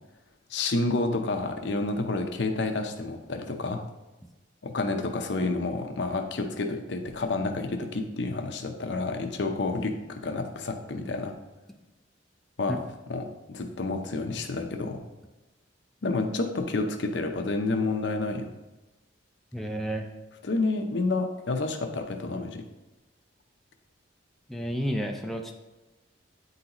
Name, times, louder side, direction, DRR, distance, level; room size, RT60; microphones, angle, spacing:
voice 1, 0.5-3.8 4.6-11.3 12.6-15.0 16.0-18.5 20.4-22.6, left 3 dB, 65° left, 5 dB, 0.6 m, -29 dB
voice 2, 19.5-20.1 24.5-25.5, equal, ahead, 1 dB, 0.4 m, -31 dB
9.1 x 3.9 x 2.9 m, 1.1 s
head